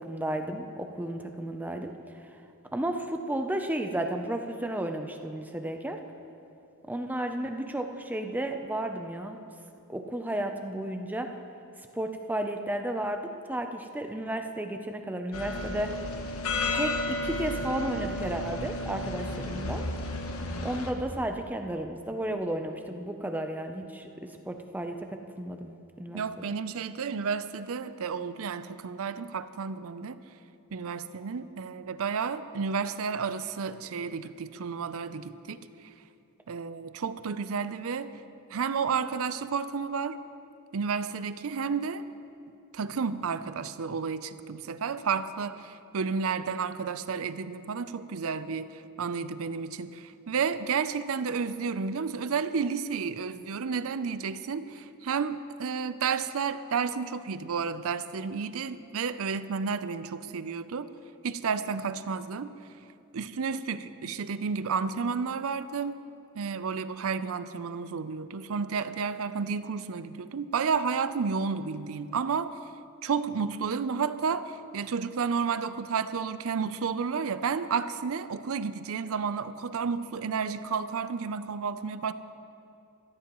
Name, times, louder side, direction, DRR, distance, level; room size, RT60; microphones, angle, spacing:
voice 1, 0.0-1.9 2.7-6.0 6.9-9.4 9.9-11.3 12.0-15.9 16.7-19.8 20.6-25.7 26.0-26.2, right 1 dB, 10° right, 5 dB, 0.5 m, -33 dB
sound 1, 15.3-20.9, left 2 dB, 65° left, 1.1 m, -32 dB
voice 2, 26.1-30.2 30.7-35.6 36.5-38.1 38.5-40.2 40.7-42.0 42.7-60.9 61.2-62.5 63.1-65.9 66.4-72.6 73.0-82.1, right 5 dB, 65° right, 13 dB, 0.5 m, -31 dB
18.5 x 14.0 x 3.1 m, 2.7 s
head